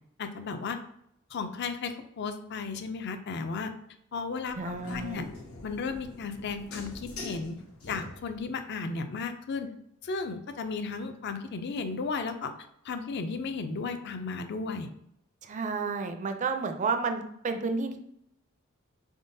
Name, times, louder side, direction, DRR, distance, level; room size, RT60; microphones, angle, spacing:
voice 1, 0.2-0.8 1.3-3.7 4.1-5.3 5.6-7.6 7.9-9.7 10.0-12.5 12.8-14.9, left 4 dB, 50° left, 8 dB, 0.4 m, -34 dB
sound 1, 4.5-8.5, left 2 dB, 80° left, 0.9 m, -44 dB
voice 2, 4.6-5.2 15.4-18.0, right 4 dB, 35° right, 6 dB, 0.4 m, -31 dB
4.0 x 3.6 x 2.6 m, 0.74 s
head